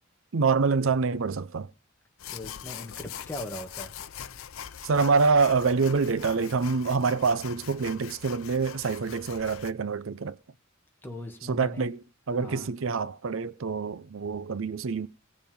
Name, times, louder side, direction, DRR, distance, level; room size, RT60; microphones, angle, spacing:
voice 1, 0.3-1.7 4.8-10.4 11.5-12.0 12.3-15.1, right 4 dB, 70° right, 0.6 m, -26 dB
sound 1, 2.2-9.7, left 9 dB, 85° left, 0.7 m, -42 dB
voice 2, 2.3-3.9 11.0-11.9 12.3-12.7, left 1 dB, 10° left, 2.1 m, -39 dB
17.5 x 6.9 x 5.4 m
head